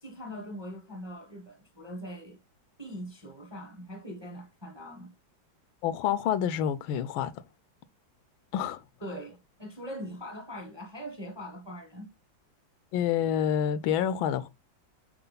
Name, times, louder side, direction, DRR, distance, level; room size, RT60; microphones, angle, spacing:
voice 1, 0.0-2.4 2.8-5.1 9.0-12.1, equal, 20° right, 0.8 m, -41 dB
voice 2, 5.8-7.3 8.5-8.8 12.9-14.5, left 9 dB, 80° left, 1.4 m, -28 dB
6.8 x 4.5 x 3.9 m
omnidirectional pair, 2.2 m